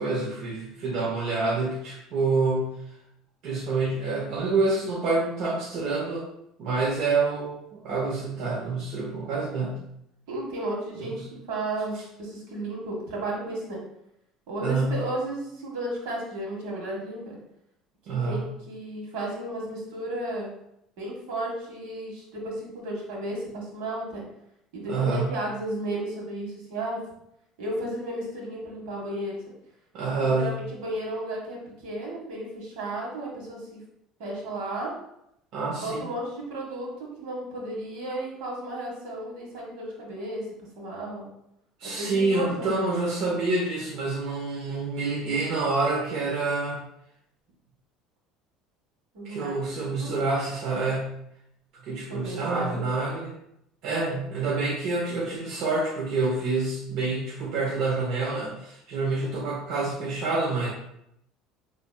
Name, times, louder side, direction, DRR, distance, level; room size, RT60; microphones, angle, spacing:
voice 1, 0.0-2.7 3.4-6.3 6.6-9.8 11.0-11.2 14.6-14.9 18.1-18.5 24.9-25.3 29.9-30.6 35.5-36.1 41.8-46.8 49.2-51.1 51.7-53.3 53.8-60.7, right 3 dB, 55° right, -4 dB, 0.8 m, -27 dB
voice 2, 10.3-13.8 14.5-17.4 18.1-20.5 21.0-24.2 24.7-27.0 27.6-29.4 30.0-33.8 34.2-34.9 35.8-40.5 40.8-41.3 41.8-42.9 49.1-49.6 50.0-50.1 52.1-52.9, right 1 dB, 80° right, -3 dB, 1.6 m, -33 dB
5.3 x 3.4 x 2.2 m, 0.79 s
cardioid pair, 160°, 0 cm